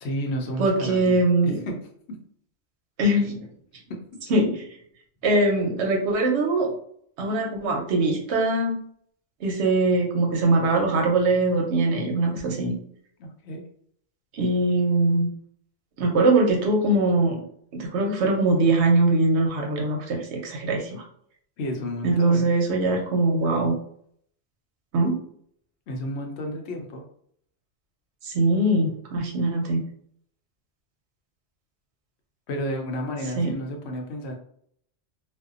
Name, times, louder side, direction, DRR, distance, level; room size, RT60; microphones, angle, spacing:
voice 1, 0.0-1.1 1.4-1.8 13.2-13.6 21.6-22.4 25.9-27.0 32.5-34.4, equal, 75° left, 2 dB, 0.9 m, -31 dB
voice 2, 0.6-1.6 3.0-3.5 4.3-4.6 5.2-6.7 7.2-8.8 9.4-12.8 14.3-15.3 16.0-17.4 17.7-21.0 22.0-23.7 24.9-25.1 28.2-29.8 33.4-33.5, right 2 dB, 80° right, 1 dB, 1.0 m, -22 dB
2.6 x 2.1 x 2.4 m, 0.64 s
omnidirectional pair, 1.1 m